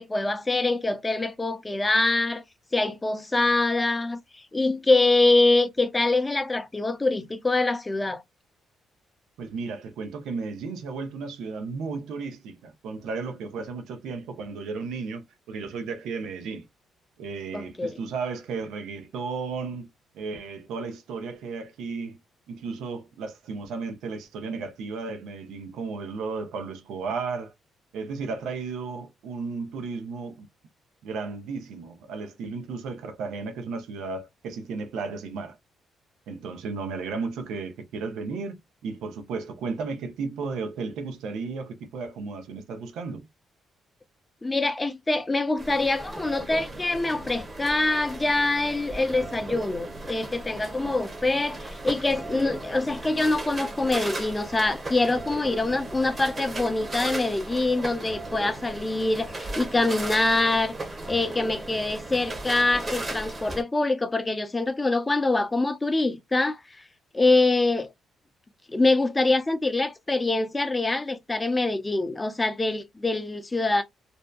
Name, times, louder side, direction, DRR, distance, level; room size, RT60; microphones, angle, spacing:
voice 1, 0.0-2.4 2.7-4.2 4.5-8.2 17.5-18.0 44.4-60.7 61.1-66.6 67.1-67.9 68.7-73.8, left 2 dB, 20° left, 0.6 m, -24 dB
voice 2, 9.4-16.7 17.2-19.9 20.1-22.2 22.5-27.5 27.9-30.5 31.0-35.6 36.3-43.3, right 4 dB, 85° right, 0.6 m, -34 dB
sound 1, 45.6-63.6, right 2 dB, 25° right, 0.9 m, -36 dB
2.6 x 2.1 x 2.2 m
cardioid pair, 90°, 0 cm